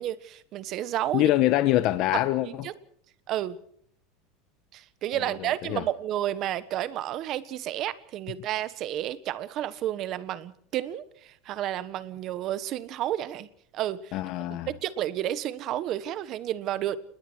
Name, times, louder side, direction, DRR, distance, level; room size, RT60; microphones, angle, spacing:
voice 1, 0.0-1.3 2.1-2.7 3.3-3.6 4.7-13.5 13.7-14.1 14.7-17.0, right 12 dB, 35° right, 1.3 m, -31 dB
voice 2, 1.1-2.6 5.4-5.8 14.1-14.7, left 15 dB, 45° left, 1.1 m, -24 dB
28.5 x 20.5 x 4.7 m
supercardioid pair, 165°, 0 cm